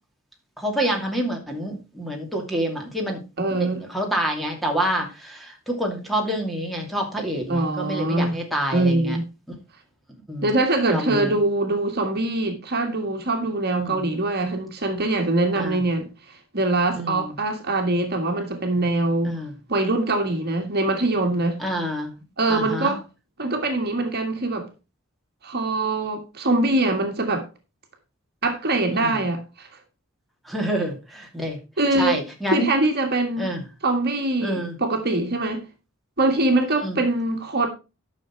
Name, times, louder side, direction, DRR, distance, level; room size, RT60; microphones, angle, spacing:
voice 1, 0.6-3.2 3.5-9.2 10.3-10.5 10.9-11.4 13.8-14.1 15.6-15.8 17.0-17.3 19.2-19.5 21.6-22.1 22.5-22.9 28.9-29.2 30.5-31.6 31.9-32.7 33.4-33.6 34.4-34.8 36.8-37.0, equal, ahead, 2.6 m, -27 dB
voice 2, 3.4-3.8 7.5-8.3 8.7-9.2 10.4-16.1 16.5-19.4 19.7-21.6 22.4-23.0 23.4-24.7 25.4-27.4 28.4-29.7 31.8-32.2 32.5-33.5 33.8-35.7 36.2-37.7, right 2 dB, 50° right, 1.7 m, -23 dB
11.5 x 6.5 x 4.5 m
head